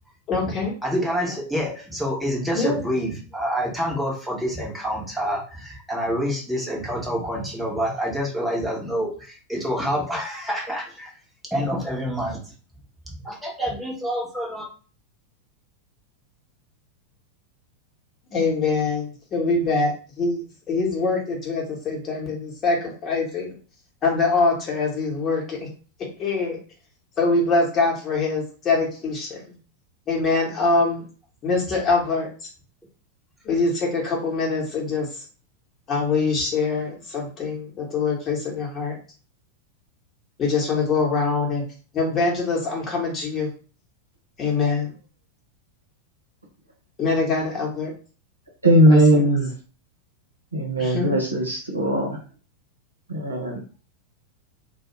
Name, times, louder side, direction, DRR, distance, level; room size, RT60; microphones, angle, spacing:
voice 1, 0.3-0.7 2.5-2.8 18.3-20.4 20.7-23.5 24.0-25.7 26.2-26.6 27.2-29.5 30.1-31.0 31.4-32.3 33.4-35.1 35.9-39.0 40.4-41.6 41.9-43.5 44.4-44.9 47.0-47.9 48.9-49.3 50.8-51.2, left 3 dB, 25° left, -2 dB, 1.1 m, -24 dB
voice 2, 0.8-11.2 11.5-12.5 13.1-14.7, equal, 5° right, -3 dB, 0.9 m, -27 dB
voice 3, 48.6-49.5 50.5-52.2 53.1-53.6, right 1 dB, 80° right, -1 dB, 0.8 m, -19 dB
2.3 x 2.2 x 3.0 m, 0.39 s
figure-of-eight pair, 90°, 0 cm